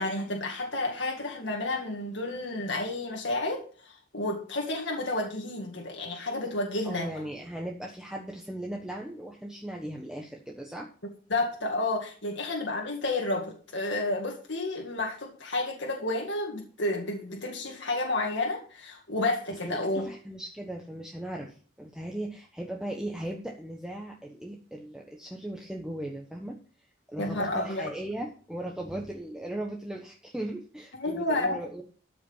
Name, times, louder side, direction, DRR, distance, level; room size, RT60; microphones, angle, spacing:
voice 1, 0.0-7.1 11.3-20.1 27.2-27.9 31.0-31.5, left 2 dB, 65° left, 0 dB, 2.1 m, -31 dB
voice 2, 6.8-10.9 19.6-26.5 27.1-31.8, right 1 dB, 5° right, -1 dB, 1.2 m, -38 dB
13.5 x 5.9 x 5.6 m, 0.42 s
head